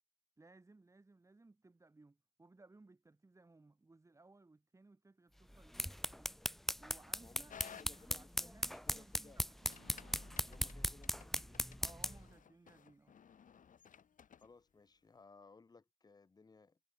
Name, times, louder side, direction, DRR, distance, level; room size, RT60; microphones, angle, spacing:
voice 1, 0.4-6.3 6.8-9.6 11.8-13.2, right 3 dB, 20° right, 4.4 m, -63 dB
sound 1, 5.5-12.3, equal, ahead, 0.3 m, -39 dB
voice 2, 7.2-9.4 10.4-11.6 14.4-16.8, left 4 dB, 30° left, 1.4 m, -62 dB
sound 2, 7.5-14.5, left 7 dB, 80° left, 4.1 m, -58 dB
Bass guitar, 9.6-13.7, right 8 dB, 85° right, 3.9 m, -70 dB
wide cardioid pair, 140°, 13 cm